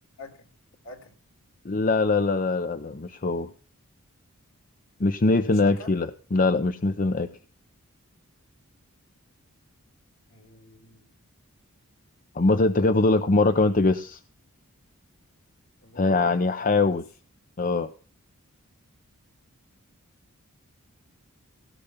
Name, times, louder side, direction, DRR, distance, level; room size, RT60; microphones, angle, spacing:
voice 1, 0.2-0.5 0.8-1.1 5.4-5.9 10.3-11.1 15.8-17.0, left 2 dB, 65° left, 6 dB, 3.1 m, -46 dB
voice 2, 1.6-3.5 5.0-7.3 12.4-14.2 16.0-17.0 17.6-17.9, left 3 dB, 40° left, 10 dB, 0.6 m, -22 dB
17.0 x 6.7 x 5.8 m, 0.39 s
head